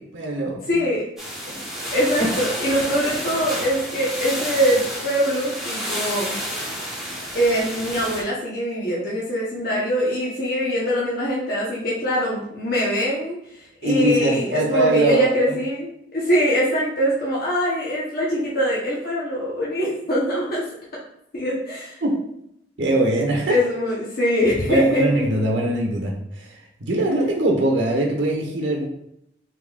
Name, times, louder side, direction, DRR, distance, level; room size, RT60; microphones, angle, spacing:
voice 1, 0.1-0.9 1.4-1.6 2.2-2.3 13.8-15.5 22.0-22.2 22.8-23.5 24.7-26.5 26.8-28.8, right 1 dB, 85° right, 0 dB, 1.0 m, -22 dB
voice 2, 0.7-1.1 1.9-6.4 7.3-20.6 21.3-22.0 23.5-25.3, equal, 55° left, -6 dB, 0.9 m, -23 dB
sound 1, 1.2-8.2, equal, ahead, 1.0 m, -30 dB
3.9 x 3.8 x 2.3 m, 0.76 s
head